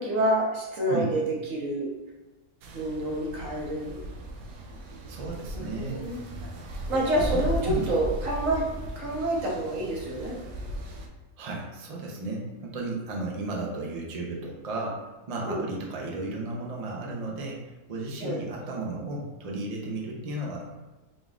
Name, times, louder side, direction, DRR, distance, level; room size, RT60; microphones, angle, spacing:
voice 1, 0.0-1.9 2.7-4.0 5.5-6.2 6.9-10.4 15.4-15.7 18.2-18.4, right 1 dB, 65° right, -3 dB, 1.2 m, -28 dB
sound 1, 2.6-11.1, right 1 dB, 85° right, 1.1 m, -36 dB
voice 2, 5.1-6.0 7.3-7.4 7.7-7.9 11.4-17.6 17.9-20.6, right 2 dB, 50° right, -1 dB, 0.4 m, -34 dB
4.1 x 3.6 x 2.4 m, 1.1 s
omnidirectional pair, 1.5 m